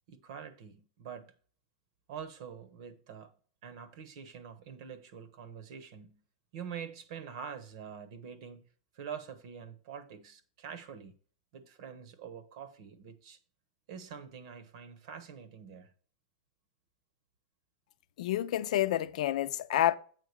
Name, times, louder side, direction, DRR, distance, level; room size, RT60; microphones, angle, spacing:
voice 1, 0.1-1.3 2.1-3.3 3.6-6.2 6.5-8.6 8.9-11.1 11.5-13.4 13.9-15.9, right 7 dB, 55° right, 1.0 m, -45 dB
voice 2, 18.2-20.0, left 12 dB, 65° left, 0.6 m, -29 dB
8.2 x 3.8 x 6.7 m
supercardioid pair, 170°, 4 cm